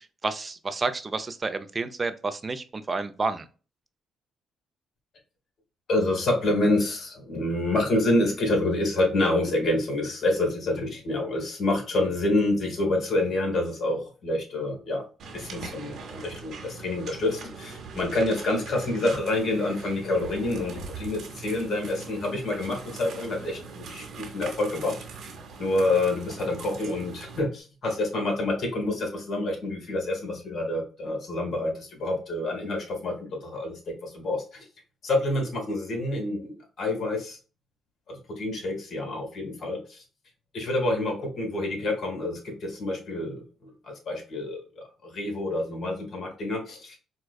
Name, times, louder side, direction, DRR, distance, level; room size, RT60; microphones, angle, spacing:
voice 1, 0.0-3.5, right 3 dB, 30° right, 10 dB, 0.5 m, -30 dB
voice 2, 5.9-15.0 15.3-25.0 25.6-34.6 35.0-37.4 38.1-40.0 40.5-47.0, left 2 dB, 55° left, 2 dB, 1.7 m, -27 dB
sound 1, 15.2-27.4, right 4 dB, 65° right, 0.9 m, -41 dB
4.6 x 2.3 x 2.2 m, 0.35 s
cardioid pair, 90°, 0 cm